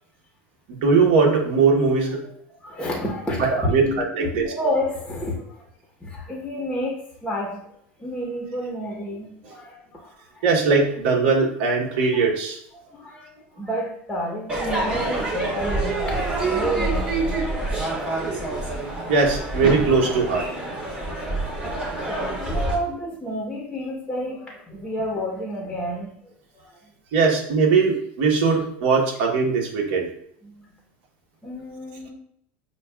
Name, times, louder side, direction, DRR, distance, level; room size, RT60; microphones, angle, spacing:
voice 1, 0.7-2.2 3.4-4.4 10.4-12.6 19.1-20.5 27.1-30.1, right 4 dB, 70° right, 0 dB, 1.1 m, -20 dB
voice 2, 2.6-5.6 6.0-7.6 8.0-10.5 12.8-17.4 22.1-26.1 26.5-26.9 30.4-30.7 31.4-32.1, equal, 10° left, -2 dB, 0.9 m, -30 dB
Crowd / Fireworks, 14.5-22.7, right 2 dB, 20° right, 1.4 m, -26 dB
6.7 x 2.3 x 2.3 m, 0.68 s
supercardioid pair, 120°, 6 cm